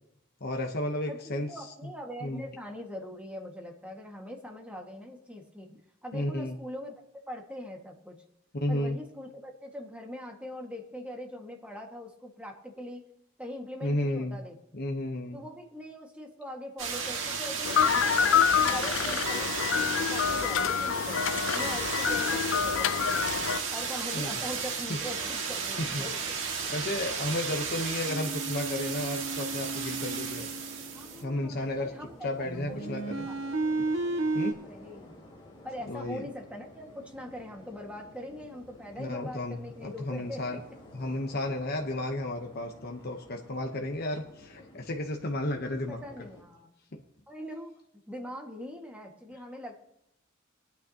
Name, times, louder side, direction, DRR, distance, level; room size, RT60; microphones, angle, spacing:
voice 1, 0.4-1.7 2.2-2.4 6.1-6.6 8.6-9.0 13.8-14.4 14.7-15.4 24.1-24.4 24.9-25.0 25.8-26.0 26.7-30.5 31.2-31.9 32.2-33.3 34.3-34.6 35.9-36.2 39.0-40.6 40.9-46.0 46.9-47.0, left 1 dB, 50° left, 2 dB, 0.9 m, -33 dB
voice 2, 1.1-7.0 7.3-8.2 8.7-13.0 13.4-14.6 15.3-18.4 18.7-21.2 21.5-23.3 23.7-26.4 30.9-33.0 33.3-33.6 34.6-35.1 35.6-40.6 45.7-46.7 47.3-47.7 48.1-49.8, left 1 dB, 5° right, 1 dB, 1.8 m, -42 dB
sound 1, 16.8-31.6 32.3-34.5, right 5 dB, 70° right, 1.9 m, -33 dB
sound 2, 17.6-23.6, left 7 dB, 70° left, 0.5 m, -27 dB
sound 3, 26.6-46.4, left 1 dB, 25° left, 3.2 m, -53 dB
21.0 x 9.4 x 2.9 m, 0.81 s
head